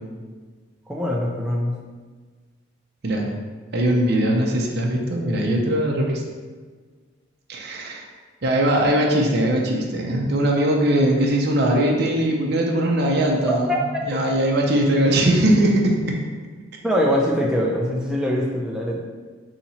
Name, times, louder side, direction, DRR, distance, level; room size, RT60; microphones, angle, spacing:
voice 1, 0.9-1.7 13.5-14.2 16.8-19.0, equal, 5° right, -3 dB, 0.4 m, -23 dB
voice 2, 3.7-6.2 7.5-8.1 8.4-16.1, right 1 dB, 50° right, 0 dB, 0.6 m, -20 dB
4.1 x 2.8 x 4.2 m, 1.4 s
head